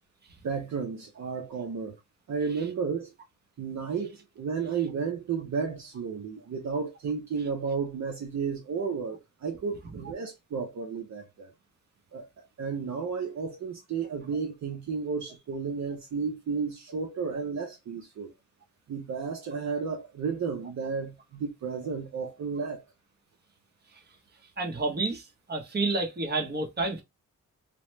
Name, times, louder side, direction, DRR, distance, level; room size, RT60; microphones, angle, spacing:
voice 1, 0.4-2.0 2.3-3.1 3.6-11.5 12.1-18.3 18.9-22.8, right 5 dB, 60° right, 0.7 m, -33 dB
voice 2, 24.6-27.0, right 3 dB, 30° right, 0.9 m, -29 dB
2.9 x 2.1 x 3.1 m
cardioid pair, 105°, 32 cm